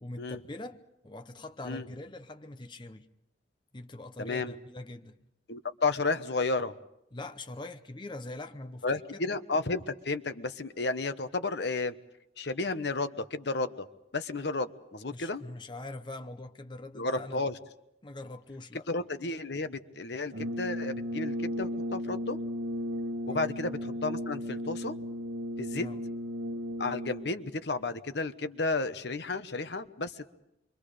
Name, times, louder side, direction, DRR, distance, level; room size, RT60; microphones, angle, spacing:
voice 1, 0.0-3.1 3.7-5.2 7.1-8.8 15.1-17.5 18.0-18.9 23.3-23.5 25.7-26.0, left 2 dB, 25° left, 0.8 m, -43 dB
voice 2, 4.2-4.6 5.5-6.7 8.8-11.9 12.4-13.9 14.1-15.4 16.9-17.6 18.9-22.4 23.3-25.0 25.6-25.9 26.8-30.3, left 3 dB, 60° left, 1.0 m, -32 dB
Brass instrument, 20.3-27.5, equal, 90° right, 1.1 m, -35 dB
28.0 x 24.0 x 5.0 m
head